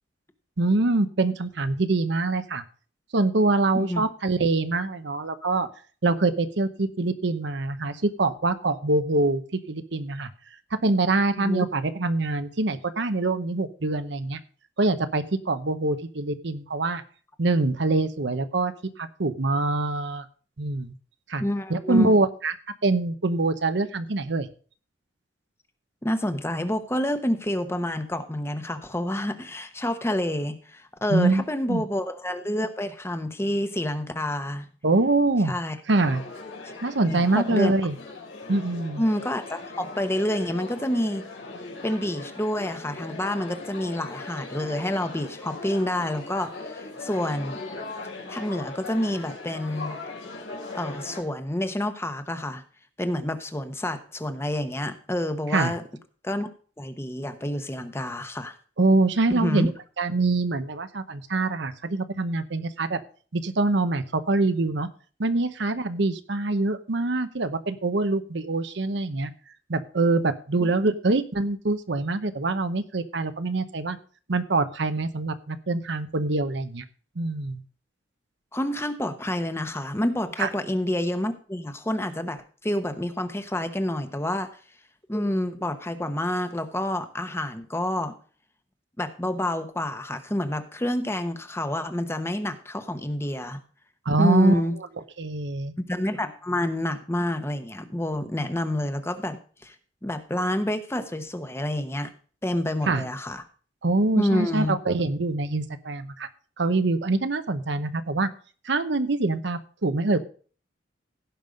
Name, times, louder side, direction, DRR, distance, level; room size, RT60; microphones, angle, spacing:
voice 1, 0.6-2.6 3.1-5.7 6.0-10.3 10.8-14.4 14.8-17.0 17.4-20.2 20.6-20.9 21.3-21.4 21.7-22.5 22.8-24.5 31.1-31.4 31.7-31.8 34.8-35.5 35.9-36.2 36.8-37.9 38.5-39.0 55.5-55.7 58.8-59.7 60.0-63.0 63.3-64.9 65.2-69.3 69.7-74.0 74.3-76.8 77.2-77.6 80.4-80.5 94.1-94.6 95.2-95.7 102.9-103.0 103.8-106.3 106.6-108.3 108.6-110.2, right 2 dB, 65° right, 11 dB, 0.9 m, -24 dB
voice 2, 11.3-11.7 21.4-22.1 26.0-34.7 35.5-35.8 36.6-36.7 37.1-37.7 39.0-41.2 41.8-47.6 48.3-50.0 50.7-52.6 53.0-55.8 56.2-56.5 56.8-58.5 59.3-59.7 70.6-70.7 78.5-84.5 85.1-88.2 89.0-93.6 94.2-94.8 95.8-99.8 100.0-102.1 102.4-103.4 104.2-104.8, left 1 dB, 15° left, 9 dB, 1.0 m, -28 dB
sound 1, 35.9-51.2, left 3 dB, 90° left, 4.2 m, -39 dB
16.5 x 5.4 x 5.2 m, 0.41 s
head